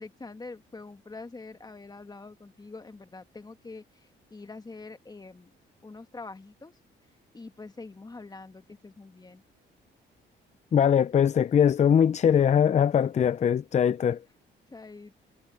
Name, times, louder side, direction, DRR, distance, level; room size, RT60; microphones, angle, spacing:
voice 1, 0.0-3.8 4.3-5.5 5.8-6.7 7.3-9.4 14.7-15.1, left 3 dB, 20° left, 1.7 m, -44 dB
voice 2, 10.7-14.2, left 8 dB, 35° left, 0.4 m, -21 dB
cardioid pair, 90°, 20 cm